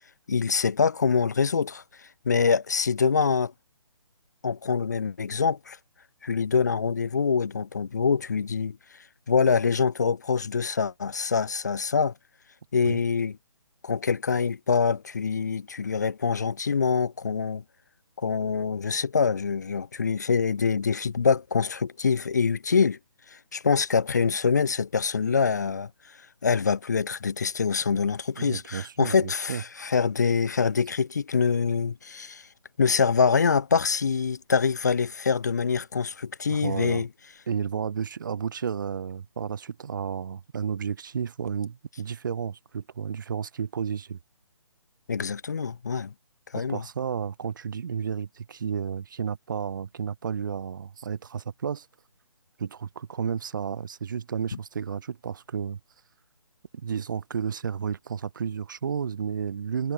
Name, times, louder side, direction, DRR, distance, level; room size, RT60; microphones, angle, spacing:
voice 1, 0.3-3.5 4.4-5.8 6.2-8.8 9.3-12.1 12.7-13.3 13.8-17.6 18.2-23.0 23.3-26.2 26.4-32.5 32.8-37.1 45.1-46.1 46.5-46.8, left 5 dB, 30° left, 0.4 m, -25 dB
voice 2, 28.4-29.6 36.5-37.0 37.5-44.2 46.5-51.9 52.6-55.8 56.8-59.9, right 7 dB, 35° right, 0.9 m, -32 dB
hypercardioid pair, 170°, 17 cm